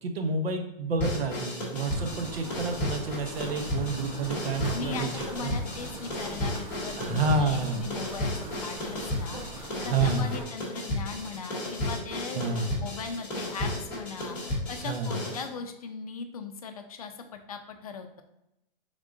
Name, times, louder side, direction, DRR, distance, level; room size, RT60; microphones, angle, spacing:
voice 1, 0.0-5.1 5.4-5.5 7.0-8.0 9.8-10.4 12.3-12.7 14.8-15.2, right 3 dB, 90° right, 5 dB, 0.9 m, -29 dB
sound 1, 1.0-15.5, left 1 dB, 5° left, 0.7 m, -33 dB
sound 2, 1.9-10.5, right 2 dB, 35° right, 0.8 m, -42 dB
voice 2, 4.7-18.2, left 5 dB, 40° left, 7 dB, 0.4 m, -39 dB
4.9 x 3.6 x 2.5 m, 0.87 s
hypercardioid pair, 170°, 29 cm